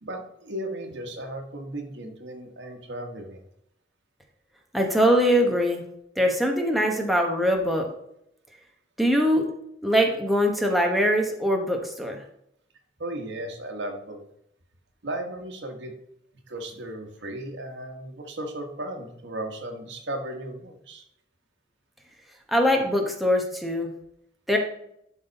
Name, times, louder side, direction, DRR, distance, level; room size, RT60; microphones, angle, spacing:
voice 1, 0.0-3.4 13.0-14.2 15.0-15.9 16.5-21.0, right 1 dB, 80° right, 4 dB, 1.3 m, -35 dB
voice 2, 4.7-5.8 6.2-7.9 9.0-9.5 9.8-12.2 22.5-23.9 24.5-24.6, equal, ahead, 1 dB, 0.9 m, -22 dB
11.5 x 4.1 x 4.0 m, 0.76 s
head